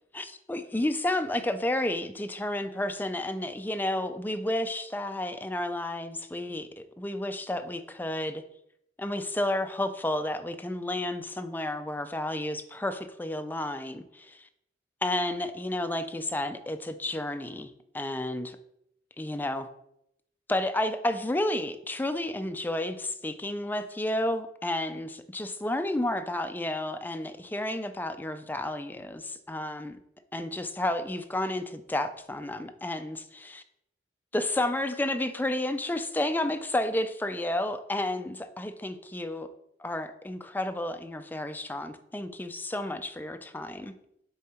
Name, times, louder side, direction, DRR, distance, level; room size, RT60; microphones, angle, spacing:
voice 1, 0.1-8.4 9.0-14.5 15.0-18.6 19.2-19.7 20.5-30.0 30.3-33.6 34.3-39.5 39.8-43.9, left 1 dB, 10° left, 9 dB, 0.4 m, -31 dB
7.0 x 3.8 x 4.3 m, 0.77 s
head